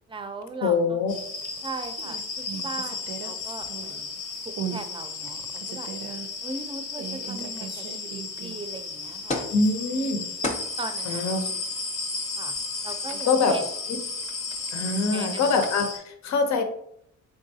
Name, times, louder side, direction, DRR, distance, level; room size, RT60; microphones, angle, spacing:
voice 1, 0.1-1.0 1.6-5.9 6.4-9.5 10.0-10.3 10.8-11.2 12.4-12.5 12.8-13.6 15.1-15.6, right 3 dB, 15° right, 7 dB, 0.5 m, -38 dB
voice 2, 0.6-1.1 9.4-10.2 11.1-11.5 13.3-13.5 14.7-16.6, left 4 dB, 65° left, 6 dB, 0.7 m, -24 dB
sound 1, 1.1-16.0, left 4 dB, 85° left, 0.9 m, -35 dB
sound 2, 1.2-1.6 2.0-4.1 4.5-4.9 5.3-6.3 7.0-8.7 9.1-9.2 12.6-13.3 14.2-15.8, right 8 dB, 85° right, 0.5 m, -38 dB
sound 3, 9.3-9.6 10.0-10.1 10.4-15.9, left 2 dB, 25° left, 0.6 m, -34 dB
3.8 x 3.5 x 2.7 m, 0.70 s
cardioid pair, 90°, 30 cm